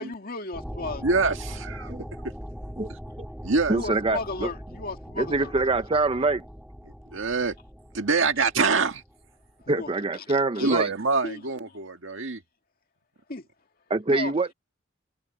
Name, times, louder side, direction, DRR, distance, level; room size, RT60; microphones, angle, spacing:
voice 1, 0.0-1.1 2.2-2.3 3.1-3.2 3.7-5.5 8.2-8.3 9.6-10.8 11.2-11.8 13.3-13.5 14.1-14.3, left 3 dB, 50° left, 2.2 m, -36 dB
sound 1, 0.5-9.7, equal, ahead, 3.0 m, -41 dB
voice 2, 1.0-1.9 3.4-3.8 7.1-7.6 7.9-9.0 10.6-12.4, right 4 dB, 70° right, 1.8 m, -25 dB
voice 3, 3.7-4.5 5.2-6.4 9.7-10.9 13.9-14.5, right 3 dB, 30° right, 0.7 m, -25 dB
head